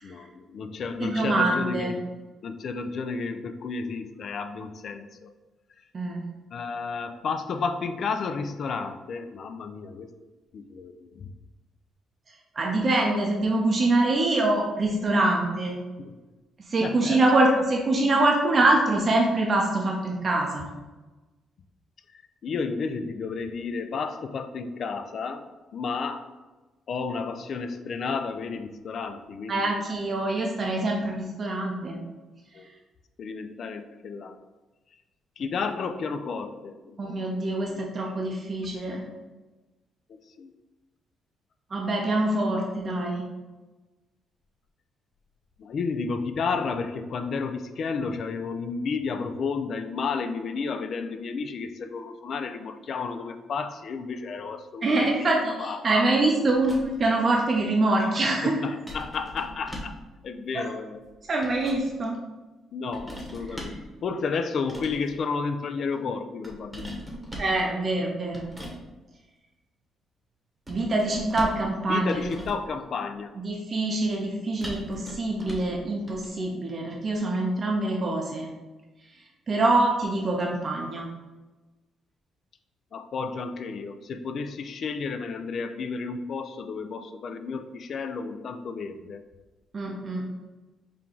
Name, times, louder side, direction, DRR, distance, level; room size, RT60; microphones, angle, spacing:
voice 1, 0.0-2.0 2.4-5.3 6.5-10.1 10.5-11.3 16.0-16.1 16.8-17.2 22.1-25.4 25.7-26.2 26.9-29.8 32.5-32.7 33.2-34.4 35.4-37.3 37.7-37.8 40.1-40.5 45.6-55.3 55.6-55.8 58.4-59.9 60.2-61.0 62.7-67.1 71.9-73.3 82.9-89.2, left 5 dB, 60° left, 9 dB, 0.3 m, -32 dB
voice 2, 1.0-1.9 5.9-6.2 12.6-15.8 16.7-20.7 29.5-32.0 37.0-39.0 41.7-43.2 54.8-58.6 60.5-60.6 61.3-62.2 67.4-68.4 70.7-72.2 73.4-78.5 79.5-81.1 89.7-90.2, right 2 dB, 40° right, -1 dB, 0.6 m, -24 dB
sound 1, 56.5-57.1 58.9-60.1 61.1-61.9 62.9-63.9 64.6-65.1 66.4-67.6 68.3-68.8 70.7-71.7 72.1-72.7 74.6-75.8 76.1-76.3, equal, 10° right, 1.0 m, -40 dB
4.4 x 2.3 x 3.8 m, 1.2 s
cardioid pair, 90°, 0 cm